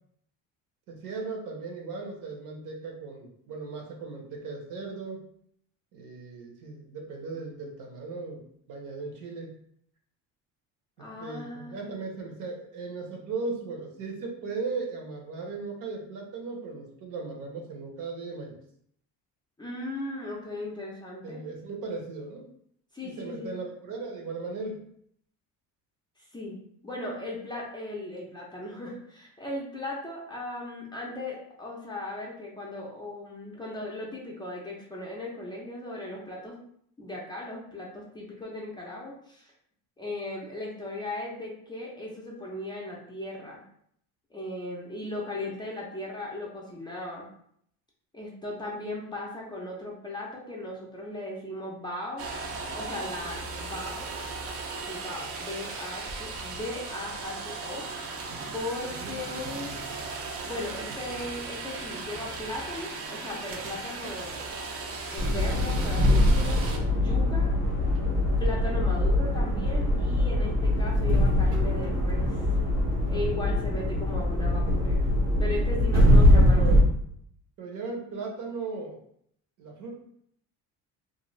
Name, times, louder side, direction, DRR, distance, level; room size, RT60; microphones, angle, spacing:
voice 1, 0.9-5.2 5.9-8.4 8.7-9.5 11.0-18.6 21.2-22.5 23.0-24.9 59.0-59.1 76.1-76.8 77.6-79.0 79.6-79.9, right 4 dB, 60° right, 1 dB, 0.9 m, -37 dB
voice 2, 11.0-12.0 19.6-21.4 22.9-23.5 26.2-26.6 26.8-36.5 37.0-39.5 40.0-43.6 44.3-47.3 48.1-52.3 52.7-54.1 54.8-58.2 58.5-59.7 60.4-64.6 65.1-67.5 68.4-72.5 73.1-75.1 75.4-76.6, left 2 dB, 15° left, -4 dB, 0.5 m, -37 dB
sound 1, 52.2-66.8, right 3 dB, 40° right, 0.5 m, -37 dB
sound 2, 65.2-76.8, left 1 dB, 85° right, 1.1 m, -22 dB
2.5 x 2.3 x 3.0 m, 0.68 s
cardioid pair, 135°, 35 cm